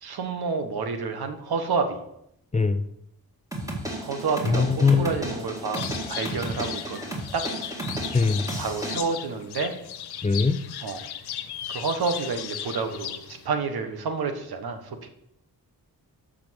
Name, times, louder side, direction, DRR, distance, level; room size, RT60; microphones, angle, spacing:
voice 1, 0.0-2.0 3.6-3.8 4.0-7.0 7.3-7.5 8.6-9.8 10.8-11.1 11.7-15.1, right 4 dB, 70° right, 7 dB, 1.2 m, -29 dB
sound 1, 3.5-9.0, right 1 dB, 10° right, 2.0 m, -33 dB
voice 2, 4.5-5.1 8.1-8.4 10.2-10.6, left 4 dB, 20° left, 10 dB, 0.4 m, -21 dB
sound 2, 5.7-13.5, left 10 dB, 85° left, 0.7 m, -36 dB
6.9 x 5.1 x 6.2 m, 0.76 s
cardioid pair, 70°, 38 cm